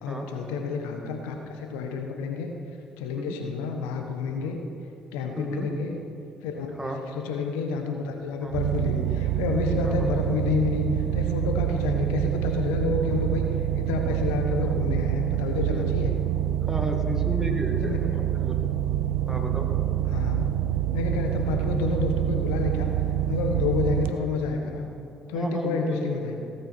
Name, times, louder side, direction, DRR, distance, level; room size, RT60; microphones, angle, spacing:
voice 1, 0.0-2.5 3.0-4.6 5.1-6.0 6.4-6.7 7.1-16.1 17.8-18.0 20.1-20.5 20.9-22.9 23.3-24.9 25.3-26.4, left 4 dB, 85° left, 4 dB, 1.2 m, -29 dB
voice 2, 5.4-5.7 6.8-7.0 8.4-8.6 9.8-10.1 14.6-14.9 15.7-15.9 16.7-18.6 19.3-19.7 21.5-21.6 25.3-26.1, right 1 dB, 15° right, 2 dB, 2.3 m, -33 dB
sound 1, 8.5-24.1, right 11 dB, 80° right, 0.5 m, -26 dB
17.5 x 9.2 x 4.4 m, 2.8 s
hypercardioid pair, 55°, 3 cm